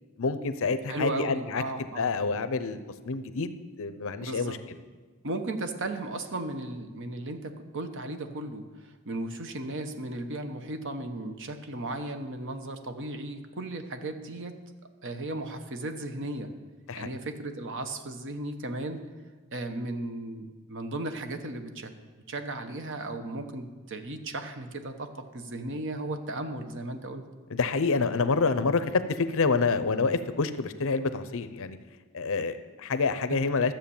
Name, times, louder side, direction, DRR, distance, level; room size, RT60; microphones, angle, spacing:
voice 1, 0.2-1.6 2.0-2.8 3.0-4.6 16.9-17.1 27.5-31.8 32.1-33.7, left 4 dB, 65° left, 12 dB, 0.7 m, -27 dB
voice 2, 0.9-2.1 4.2-4.6 5.2-14.5 15.0-16.5 16.9-19.0 19.5-21.9 22.3-27.2, right 2 dB, 60° right, 8 dB, 1.0 m, -35 dB
13.0 x 7.5 x 7.1 m, 1.4 s
head